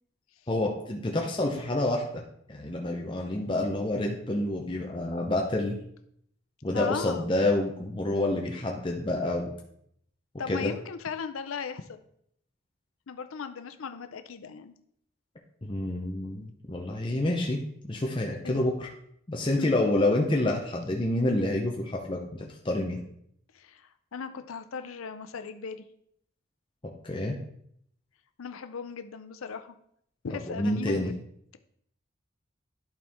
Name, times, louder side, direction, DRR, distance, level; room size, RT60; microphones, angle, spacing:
voice 1, 0.5-2.2 2.5-5.8 6.6-9.5 10.5-10.7 15.6-17.6 17.9-18.9 19.3-23.0 27.0-27.4 30.5-31.1, left 1 dB, 25° left, 0 dB, 0.7 m, -28 dB
voice 2, 6.7-7.3 10.4-12.0 13.1-14.7 18.4-18.5 19.6-19.9 23.5-25.8 28.4-29.7 30.2-31.1, left 6 dB, 90° left, 10 dB, 0.6 m, -37 dB
11.5 x 4.3 x 3.5 m, 0.71 s
head